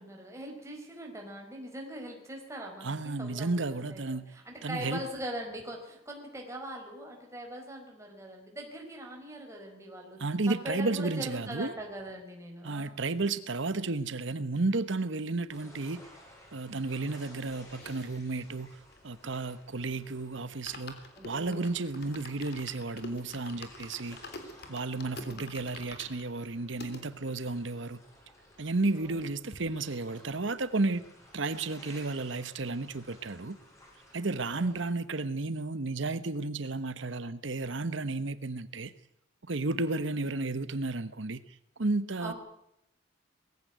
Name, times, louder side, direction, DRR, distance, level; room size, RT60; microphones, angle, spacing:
voice 1, 0.0-10.2 10.5-13.0 21.2-22.0 25.0-25.6 28.9-29.2 34.5-34.9 42.2-42.3, equal, 15° right, 1 dB, 4.8 m, -42 dB
voice 2, 2.8-5.0 10.2-11.7 12.6-16.0 16.5-24.2 24.7-28.0 28.6-31.0 31.3-33.6 34.1-38.9 39.5-42.3, right 3 dB, 65° right, 14 dB, 1.1 m, -33 dB
sound 1, 15.5-34.9, left 1 dB, 15° left, 7.4 m, -56 dB
sound 2, 17.0-19.8 20.1-20.2 20.5-27.0 27.6-27.7 27.9-28.0 28.3-29.2 29.5-29.6, left 2 dB, 50° left, 3.5 m, -48 dB
21.0 x 16.0 x 9.3 m, 0.81 s
head